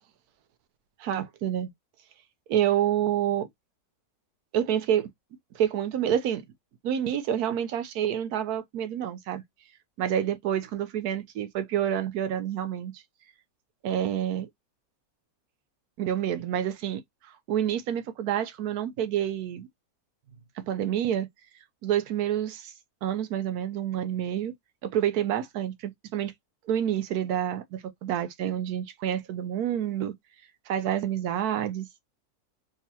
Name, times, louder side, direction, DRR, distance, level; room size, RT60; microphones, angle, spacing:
voice 1, 1.0-1.7 2.5-3.5 4.5-5.1 5.5-6.4 6.8-9.4 10.0-12.9 13.8-14.5 16.0-17.0 17.5-19.7 20.7-21.3 21.8-22.7 23.0-24.5 24.8-26.3 26.7-30.1 30.7-31.9, right 10 dB, 85° right, 1.2 m, -28 dB
3.8 x 2.4 x 2.7 m
omnidirectional pair, 1.6 m